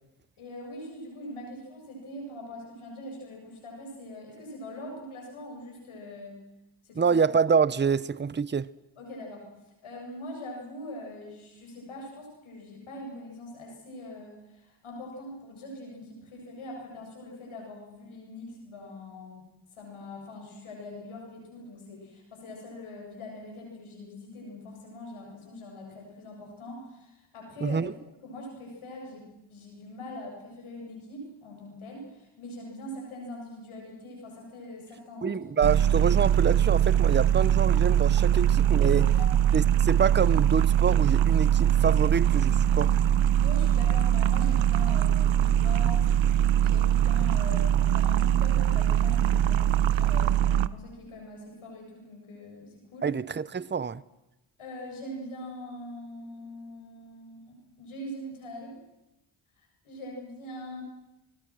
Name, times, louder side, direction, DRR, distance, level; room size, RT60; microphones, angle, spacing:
voice 1, 0.4-6.4 6.8-7.2 9.0-9.5 9.8-19.5 19.8-27.8 28.2-35.4 38.8-39.3 43.4-53.1 54.6-58.8 59.6-60.8, left 1 dB, 80° left, 8.0 m, -42 dB
voice 2, 7.0-8.7 27.6-27.9 35.2-39.0 39.5-42.9 53.0-54.0, right 6 dB, 20° right, 0.8 m, -26 dB
sound 1, 35.6-50.7, right 10 dB, 65° right, 0.9 m, -22 dB
29.0 x 20.5 x 6.3 m
supercardioid pair, 45°, 49 cm